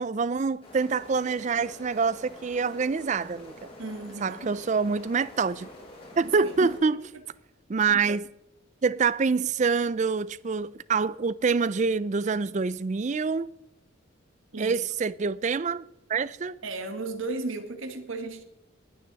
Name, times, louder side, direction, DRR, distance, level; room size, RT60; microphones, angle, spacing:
voice 1, 0.0-3.5 4.2-5.7 6.2-7.0 7.7-8.3 8.8-13.5 14.6-16.6, right 5 dB, 35° right, 0.4 m, -26 dB
sound 1, 0.6-6.8, left 1 dB, 25° left, 5.2 m, -47 dB
voice 2, 3.8-4.5 6.4-6.7 7.9-8.0 14.5-14.8 16.6-18.4, right 2 dB, 75° right, 1.5 m, -35 dB
20.0 x 9.5 x 4.0 m
head